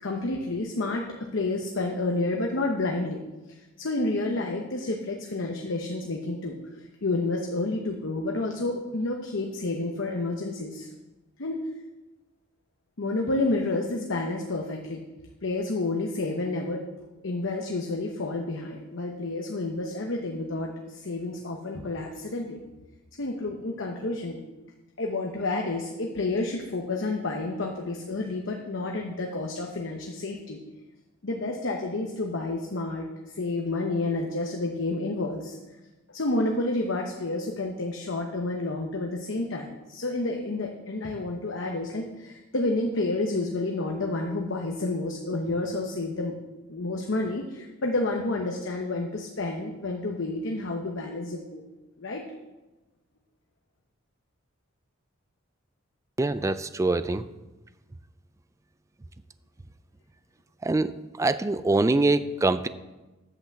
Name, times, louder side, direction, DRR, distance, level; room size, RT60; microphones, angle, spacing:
voice 1, 0.0-3.2 3.5-10.9 11.4-11.6 13.0-15.0 15.4-16.8 17.2-22.6 23.2-24.4 25.0-30.6 31.2-35.6 36.1-46.3 46.7-51.6 52.0-52.2, left 2 dB, 65° left, 1 dB, 0.9 m, -30 dB
voice 2, 56.2-57.2 60.6-60.9 61.2-62.7, right 2 dB, 15° right, 13 dB, 0.3 m, -24 dB
8.4 x 5.8 x 7.1 m, 1.1 s
head